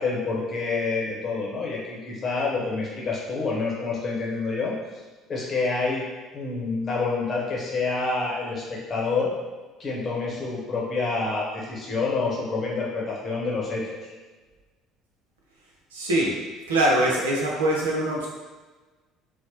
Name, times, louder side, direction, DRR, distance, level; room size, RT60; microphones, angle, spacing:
voice 1, 0.0-4.7 5.3-6.0 6.3-9.3 9.8-14.1, left 3 dB, 35° left, -4 dB, 0.9 m, -27 dB
voice 2, 15.9-16.4 16.7-18.3, right 1 dB, 75° right, -3 dB, 0.5 m, -23 dB
3.9 x 2.0 x 2.9 m, 1.3 s
figure-of-eight pair, 55°, 0 cm